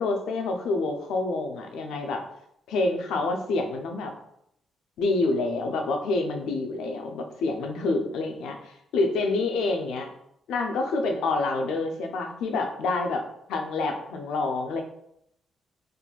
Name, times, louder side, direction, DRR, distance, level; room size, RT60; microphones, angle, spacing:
voice 1, 0.0-2.2 2.7-4.1 5.0-10.1 10.5-13.2 13.5-14.8, left 3 dB, 90° left, 4 dB, 0.4 m, -27 dB
3.6 x 2.5 x 2.3 m, 0.77 s
cardioid pair, 95°, 0 cm